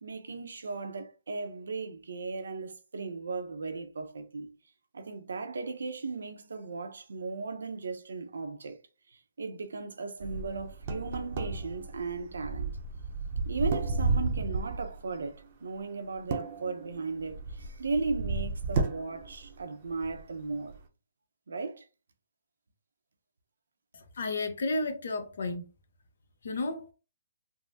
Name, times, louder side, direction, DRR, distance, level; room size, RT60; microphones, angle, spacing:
voice 1, 0.0-4.5 4.9-8.8 9.1-12.7 13.4-20.8 21.5-21.8, right 4 dB, 90° right, 0.6 m, -36 dB
sound 1, 10.2-15.0 16.1-19.6 19.9-20.2 20.7-20.8, right 3 dB, 40° right, 0.6 m, -33 dB
voice 2, 23.9-25.7 26.4-26.9, left 2 dB, 70° left, 0.7 m, -32 dB
3.6 x 2.0 x 2.7 m
hypercardioid pair, 165°, 0 cm